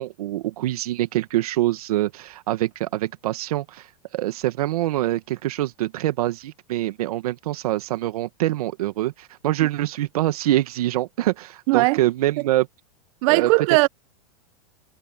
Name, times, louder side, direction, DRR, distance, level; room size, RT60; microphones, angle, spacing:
voice 1, 0.0-3.9 4.1-12.7 13.3-13.5, right 15 dB, 70° right, 1.6 m, -25 dB
voice 2, 11.7-12.0 12.4-12.5 13.2-13.9, right 25 dB, 55° right, 1.2 m, -18 dB
hypercardioid pair, 120°, 20 cm